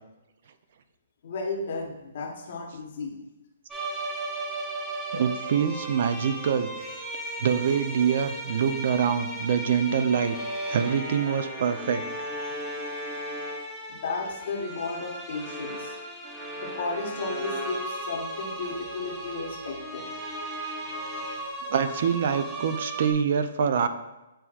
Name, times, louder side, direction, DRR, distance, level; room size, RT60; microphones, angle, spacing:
voice 1, 1.2-3.2 13.9-15.9 16.6-20.2 20.8-21.3, left 3 dB, 55° left, 1 dB, 0.9 m, -34 dB
sound 1, 3.7-23.1, right 1 dB, 10° right, 0.6 m, -36 dB
voice 2, 5.1-6.7 7.4-10.4 10.7-12.0 21.7-23.9, right 7 dB, 55° right, 10 dB, 0.4 m, -25 dB
7.6 x 2.8 x 2.4 m, 0.99 s
hypercardioid pair, 160°, 0 cm